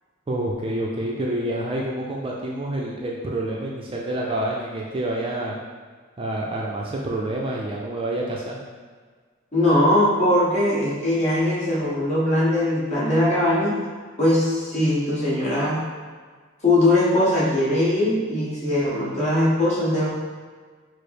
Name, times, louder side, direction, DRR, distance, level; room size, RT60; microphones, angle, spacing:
voice 1, 0.3-5.6 6.2-8.6, right 1 dB, 25° right, -3 dB, 0.4 m, -28 dB
voice 2, 9.5-13.7 14.2-15.8 16.6-20.1, left 1 dB, 35° left, -7 dB, 1.3 m, -20 dB
4.8 x 2.0 x 4.6 m, 1.6 s
head